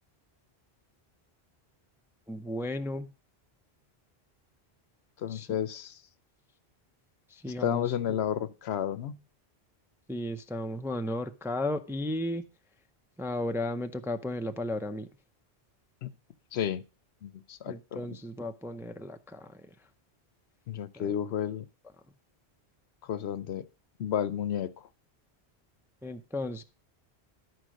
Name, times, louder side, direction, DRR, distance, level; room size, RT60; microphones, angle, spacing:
voice 1, 2.3-3.1 5.3-5.5 7.3-8.2 10.1-12.4 13.2-15.1 17.7-19.7 21.0-21.1 26.0-26.6, left 1 dB, 5° right, 0.4 m, -34 dB
voice 2, 5.2-6.0 7.6-9.2 16.0-16.1 16.5-16.8 17.2-18.0 20.7-21.7 23.0-23.7 24.0-24.7, left 9 dB, 80° left, 0.9 m, -32 dB
11.5 x 4.6 x 6.3 m
omnidirectional pair, 1.1 m